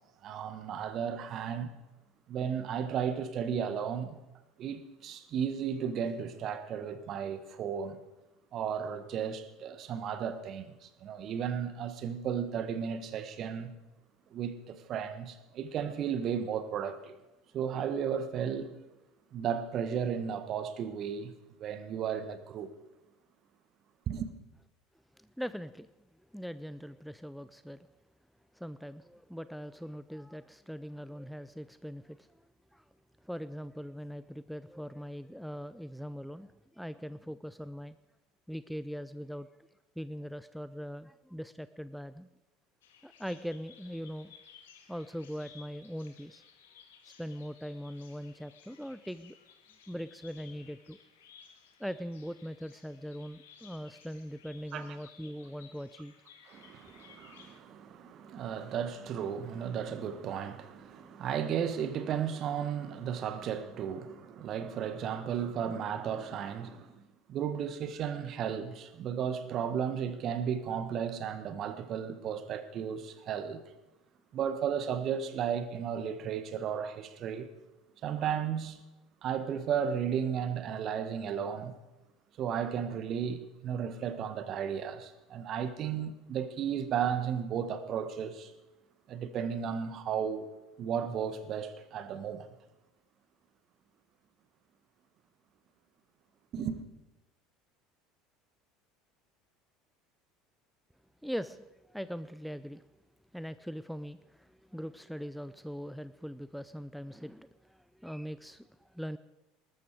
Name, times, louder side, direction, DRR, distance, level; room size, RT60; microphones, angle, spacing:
voice 1, 0.2-1.7 2.3-4.2 4.6-8.0 8.5-13.7 14.3-17.2 17.5-18.7 19.3-21.3 21.6-22.7 24.1-24.3 54.7-54.9 56.5-67.0 67.3-73.6 74.3-77.5 78.0-78.8 79.2-81.7 82.4-88.5 89.1-90.5 90.8-92.5 96.5-96.8, right 8 dB, 45° right, 1.5 m, -34 dB
voice 2, 25.2-25.9 26.3-27.9 28.5-32.3 32.7-32.8 33.2-36.5 36.7-38.0 38.5-39.5 40.0-42.3 43.0-44.3 44.9-46.4 47.2-49.4 49.9-51.0 51.8-56.1 101.2-102.8 103.3-109.2, equal, ahead, 0.5 m, -41 dB
Bird vocalization bird call bird song, 42.8-57.6, left 7 dB, 75° left, 1.8 m, -58 dB
20.0 x 13.0 x 4.8 m
hypercardioid pair, 70°, 0 cm